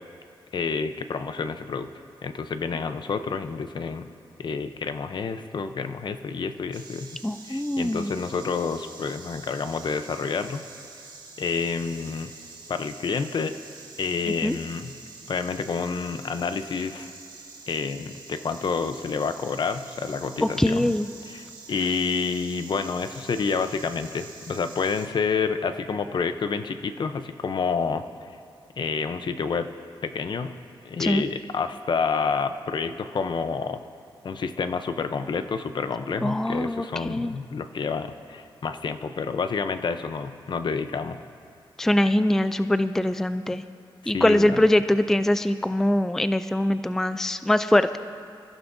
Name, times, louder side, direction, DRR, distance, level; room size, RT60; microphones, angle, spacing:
voice 1, 0.5-1.9 2.2-4.1 4.4-7.1 7.5-10.6 11.4-12.3 12.7-13.6 14.0-14.9 15.3-17.1 17.7-20.9 21.3-28.3 28.8-29.7 30.0-30.5 30.8-33.8 34.2-41.2 44.0-44.6, left 5 dB, 55° left, 9 dB, 0.7 m, -29 dB
Insect, 6.7-25.1, right 3 dB, 55° right, 1.9 m, -46 dB
voice 2, 7.2-8.1 14.4-14.6 20.4-21.1 31.0-31.3 36.2-37.4 41.8-43.6 44.1-48.0, left 1 dB, 5° left, 11 dB, 0.3 m, -23 dB
27.0 x 15.0 x 2.7 m, 2.3 s
wide cardioid pair, 115°, 9 cm